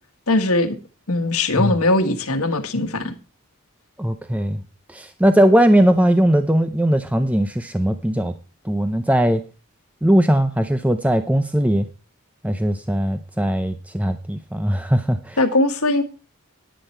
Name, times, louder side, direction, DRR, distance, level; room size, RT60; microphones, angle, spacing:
voice 1, 0.3-0.8 1.1-3.1 15.4-16.0, left 2 dB, 85° left, 7 dB, 1.7 m, -20 dB
voice 2, 4.0-4.6 4.9-8.3 8.6-9.4 10.0-11.9 12.4-15.4, right 1 dB, 5° right, 8 dB, 0.6 m, -19 dB
10.5 x 10.0 x 4.5 m, 0.32 s
head